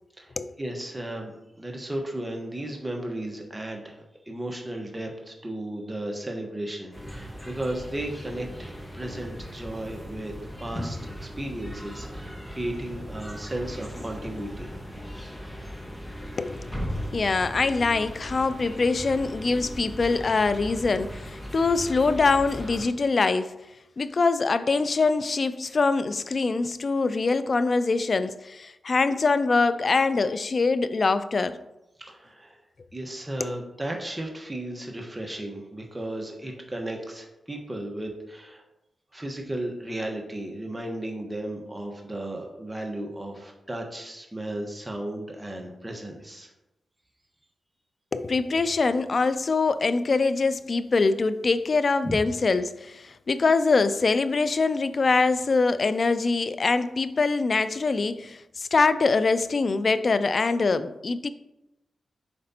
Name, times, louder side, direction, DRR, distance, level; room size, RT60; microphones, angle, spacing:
voice 1, 0.2-10.3 10.6-14.7 32.0-32.6 32.9-38.6 39.1-46.5 52.0-52.2, right 1 dB, 20° right, 1.3 m, -35 dB
sound 1, 6.9-22.9, equal, 10° left, 1.5 m, -38 dB
voice 2, 16.4-16.7 17.1-23.5 24.0-31.6 33.4-33.6 48.1-61.3, left 4 dB, 55° left, 0.4 m, -24 dB
7.7 x 5.0 x 2.9 m
cardioid pair, 60°, 0 cm